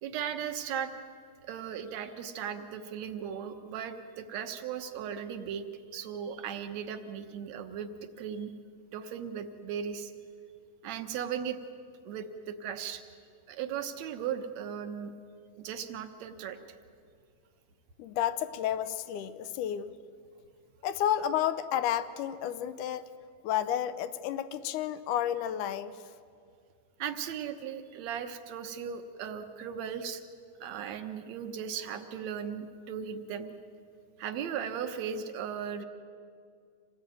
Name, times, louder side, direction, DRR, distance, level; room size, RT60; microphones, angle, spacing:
voice 1, 0.0-0.9 1.4-5.7 5.9-8.5 8.9-10.1 10.8-11.6 12.0-13.0 13.5-15.1 15.6-16.6 27.0-30.2 30.6-33.5 34.2-35.9, right 8 dB, 65° right, 7 dB, 2.4 m, -37 dB
voice 2, 18.0-19.9 20.8-23.0 23.4-26.0, left 11 dB, 90° left, 13 dB, 2.3 m, -31 dB
26.5 x 18.5 x 9.3 m, 2.2 s
omnidirectional pair, 3.4 m